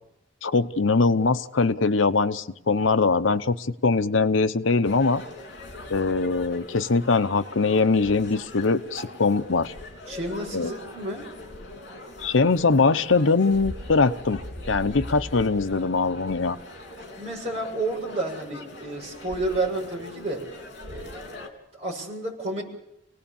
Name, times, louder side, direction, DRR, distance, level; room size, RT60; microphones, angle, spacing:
voice 1, 0.4-5.2 5.9-9.7 10.5-10.7 12.2-14.4 14.7-16.6, left 4 dB, 85° left, 11 dB, 0.9 m, -22 dB
sound 1, 4.8-21.5, left 1 dB, 60° left, 3.8 m, -41 dB
voice 2, 10.1-11.3 17.2-20.5 20.9-21.5 21.7-22.6, right 2 dB, 35° right, -1 dB, 7.0 m, -31 dB
27.5 x 19.0 x 7.2 m, 0.81 s
head